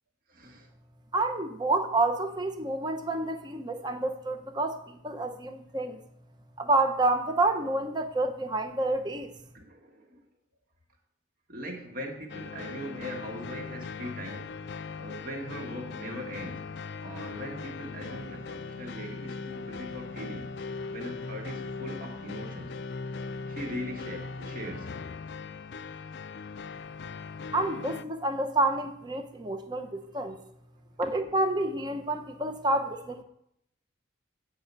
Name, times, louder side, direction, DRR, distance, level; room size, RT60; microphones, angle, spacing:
voice 1, 0.3-0.7 9.5-10.2 11.5-14.6 15.0-16.7 17.0-20.5 20.9-22.7 23.5-24.9 31.0-31.3, equal, 45° right, 1.6 m, -40 dB
voice 2, 1.1-6.0 6.6-9.3 27.5-30.4 31.0-33.2, right 2 dB, 20° right, 0.6 m, -29 dB
sound 1, 12.3-28.0, left 4 dB, 60° left, 0.4 m, -39 dB
8.6 x 4.8 x 6.7 m
head